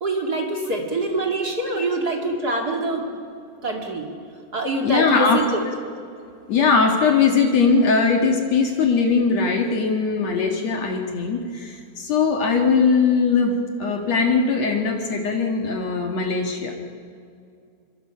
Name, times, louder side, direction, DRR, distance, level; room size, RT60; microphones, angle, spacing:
voice 1, 0.0-3.0 3.6-4.1 4.5-5.6, right 2 dB, 35° right, 1 dB, 1.5 m, -25 dB
voice 2, 4.8-5.4 6.5-16.7, left 5 dB, 65° left, 2 dB, 1.7 m, -20 dB
26.0 x 24.5 x 5.7 m, 2.4 s
omnidirectional pair, 5.4 m